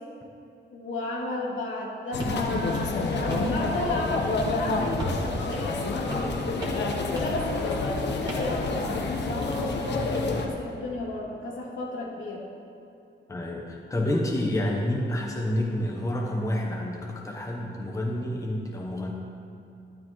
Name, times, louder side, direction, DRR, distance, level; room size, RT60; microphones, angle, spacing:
voice 1, 0.7-6.5 7.0-12.4, left 1 dB, 80° left, -4 dB, 2.6 m, -33 dB
sound 1, 2.1-10.5, left 3 dB, 60° left, 1.1 m, -29 dB
sound 2, 2.2-2.4 2.7-3.5 3.8-4.1 4.4-4.6 5.0-5.3 5.5-5.6 6.1-6.3 6.6-6.9 7.2-7.4 7.7-7.9 8.3-8.5 8.8-9.0 9.4-10.3, right 1 dB, 25° right, 2.2 m, -36 dB
voice 2, 13.3-19.1, left 1 dB, 15° left, -1 dB, 1.0 m, -29 dB
12.5 x 12.5 x 3.1 m, 2.8 s
wide cardioid pair, 170°, 20 cm